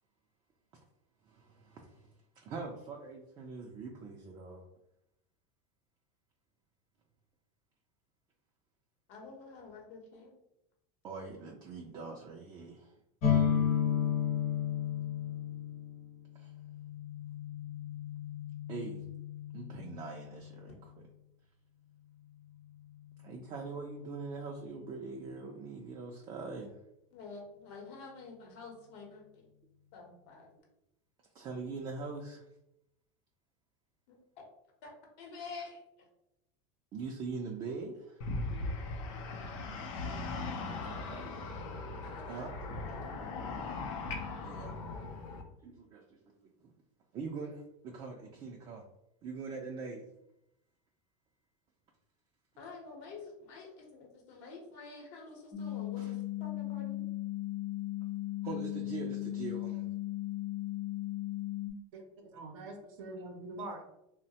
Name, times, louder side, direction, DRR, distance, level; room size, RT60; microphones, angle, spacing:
voice 1, 1.2-2.1 2.4-4.6 11.0-12.9 16.3-16.5 18.7-19.0 19.5-20.9 23.2-26.7 31.3-32.4 36.9-38.2 40.4-41.3 42.3-42.5 43.0-43.2 44.4-44.8 45.4-46.7 47.1-48.8 49.2-50.1 56.0-56.2 58.4-59.9, right 4 dB, 30° right, 0 dB, 0.3 m, -43 dB
voice 2, 9.1-10.3 27.1-29.5 29.9-30.5 34.1-34.2 34.8-34.9 35.2-35.8 38.5-38.7 42.0-42.5 42.8-43.1 52.6-57.1, left 4 dB, 65° left, 0 dB, 0.9 m, -48 dB
sound 1, 13.2-20.8, left 8 dB, 45° left, 1.0 m, -33 dB
sound 2, 38.2-45.4, left 3 dB, 80° left, 0.5 m, -39 dB
sound 3, 55.5-61.7, left 16 dB, 20° left, 0.6 m, -37 dB
voice 3, 61.9-63.8, right 2 dB, 80° right, 2 dB, 0.5 m, -44 dB
3.0 x 2.1 x 2.7 m, 0.83 s
supercardioid pair, 140°, 17 cm